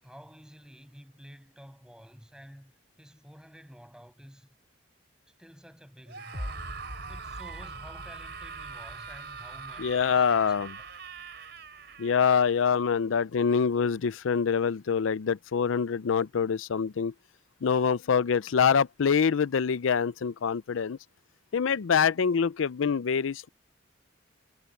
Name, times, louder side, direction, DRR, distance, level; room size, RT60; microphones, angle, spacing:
voice 1, 0.0-2.7 3.0-4.5 5.4-6.6 7.1-10.9, equal, 5° right, 6.1 m, -51 dB
Screaming, 6.1-12.6, right 5 dB, 55° right, 4.1 m, -43 dB
sound 1, 6.3-12.3, equal, 40° left, 1.9 m, -45 dB
voice 2, 9.8-10.7 12.0-17.1 17.6-21.0 21.5-23.5, left 6 dB, 85° left, 0.5 m, -25 dB
head